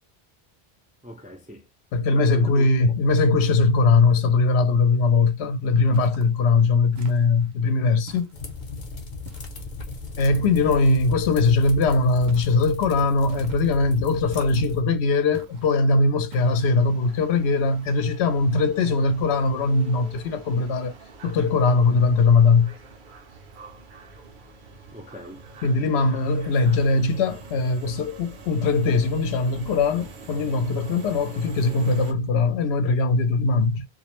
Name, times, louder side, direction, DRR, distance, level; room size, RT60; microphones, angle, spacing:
voice 1, 1.0-1.7 2.1-3.0 24.9-25.5, equal, 15° right, 0.3 m, -41 dB
voice 2, 1.9-8.3 10.2-20.9 21.2-22.7 25.6-33.8, left 3 dB, 85° left, 0.8 m, -20 dB
sound 1, 5.9-6.4 6.9-7.5 8.1-8.7 9.2-9.6 10.2-10.7 12.3-12.8 13.3-13.8 14.3-14.8 15.3-15.8 16.3-16.8, right 3 dB, 85° right, 0.9 m, -47 dB
sound 2, 8.3-14.8, left 3 dB, 55° left, 0.8 m, -37 dB
sound 3, 16.3-32.1, right 3 dB, 55° right, 0.7 m, -45 dB
2.4 x 2.0 x 2.9 m
omnidirectional pair, 1.1 m